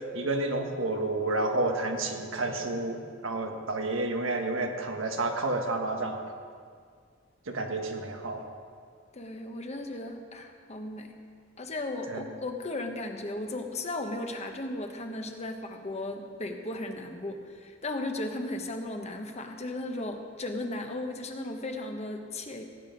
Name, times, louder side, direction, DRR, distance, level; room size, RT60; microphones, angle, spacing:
voice 1, 0.1-6.2 7.5-8.4 12.1-12.2, right 2 dB, 85° right, 3 dB, 1.5 m, -30 dB
voice 2, 9.1-11.1 11.6-22.6, left 2 dB, 35° left, 4 dB, 1.1 m, -36 dB
17.5 x 9.1 x 5.3 m, 2.1 s
head